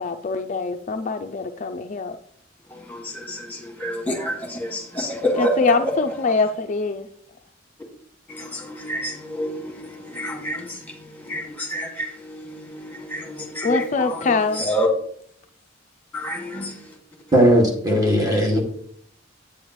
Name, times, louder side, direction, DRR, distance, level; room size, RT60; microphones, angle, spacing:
voice 1, 0.0-2.1 5.4-7.0 13.6-14.6, left 4 dB, 40° left, 0.4 m, -23 dB
voice 2, 2.7-6.5 8.3-14.9 16.1-16.9, equal, 10° left, 2.0 m, -29 dB
voice 3, 17.3-18.6, equal, 20° right, 2.0 m, -17 dB
9.0 x 8.4 x 3.1 m
head